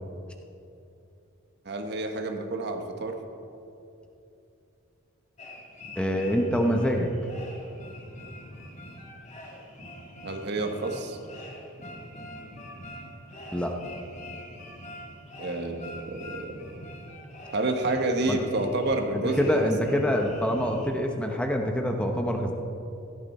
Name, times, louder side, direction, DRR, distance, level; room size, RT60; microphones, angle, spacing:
voice 1, 1.6-3.1 10.2-11.2 15.4-16.6 17.5-19.7, right 2 dB, 50° right, 5 dB, 1.3 m, -29 dB
sound 1, 5.4-20.9, left 1 dB, 35° left, 1.9 m, -44 dB
voice 2, 5.9-7.1 13.5-13.8 18.3-18.4 19.1-22.5, equal, 5° left, 2 dB, 0.9 m, -25 dB
16.5 x 13.0 x 4.3 m, 2.7 s
head